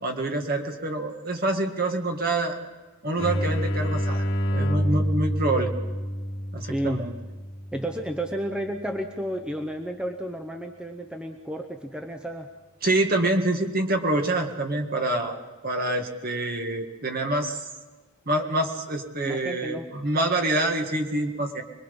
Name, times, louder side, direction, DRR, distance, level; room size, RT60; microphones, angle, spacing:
voice 1, 0.0-2.6 3.0-5.7 6.5-7.2 12.8-15.4 15.6-17.7 18.3-21.6, right 2 dB, 40° right, 4 dB, 1.9 m, -26 dB
sound 1, 3.2-8.7, equal, 55° left, 2.7 m, -28 dB
voice 2, 6.7-7.1 7.7-12.5 19.2-19.9, right 1 dB, 5° right, 3 dB, 0.8 m, -32 dB
25.5 x 21.0 x 5.5 m, 1.3 s
head